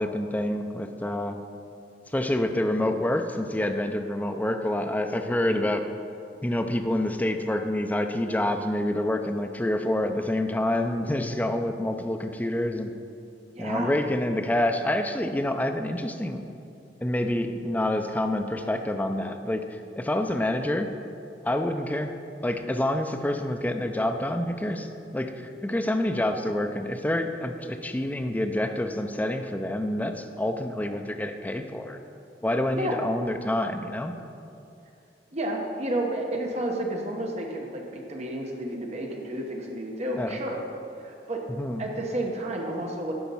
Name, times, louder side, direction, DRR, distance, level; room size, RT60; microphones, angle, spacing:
voice 1, 0.0-1.4 2.1-5.8 6.4-12.9 13.6-16.4 17.0-19.6 20.0-20.9 21.4-22.1 22.4-32.0 32.4-34.1 40.2-40.4 41.5-41.8, left 1 dB, 10° left, 6 dB, 0.4 m, -27 dB
voice 2, 13.5-13.9 32.7-33.0 35.3-40.6 41.0-41.4 41.8-43.1, right 1 dB, 40° right, 1 dB, 1.0 m, -31 dB
11.5 x 4.1 x 5.5 m, 2.6 s
head